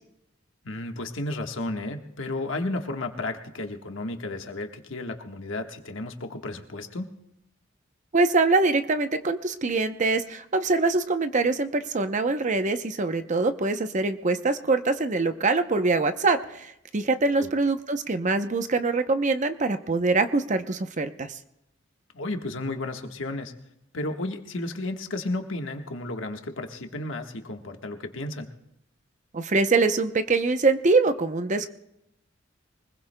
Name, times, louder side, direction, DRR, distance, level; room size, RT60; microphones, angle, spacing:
voice 1, 0.6-7.1 17.4-17.5 22.1-23.5 23.9-28.5, left 2 dB, 80° left, 5 dB, 1.4 m, -33 dB
voice 2, 8.1-16.7 16.9-21.3 29.3-31.7, right 3 dB, 40° right, 9 dB, 0.7 m, -24 dB
24.5 x 20.5 x 2.2 m, 0.85 s
head